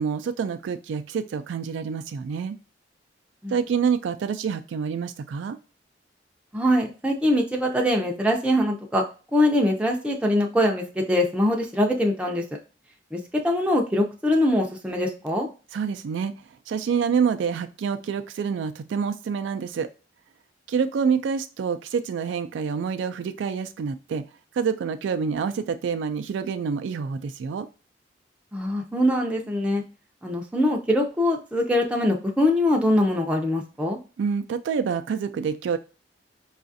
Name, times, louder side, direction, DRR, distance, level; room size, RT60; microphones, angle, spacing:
voice 1, 0.0-2.6 3.5-5.6 15.7-16.3 16.7-19.9 20.7-24.2 24.5-27.7 34.2-35.8, right 6 dB, 80° right, 10 dB, 0.3 m, -27 dB
voice 2, 6.5-9.0 9.3-12.4 13.1-15.5 28.5-29.8 30.2-34.0, left 1 dB, 5° right, 0 dB, 0.5 m, -23 dB
4.9 x 2.4 x 2.6 m, 0.33 s
head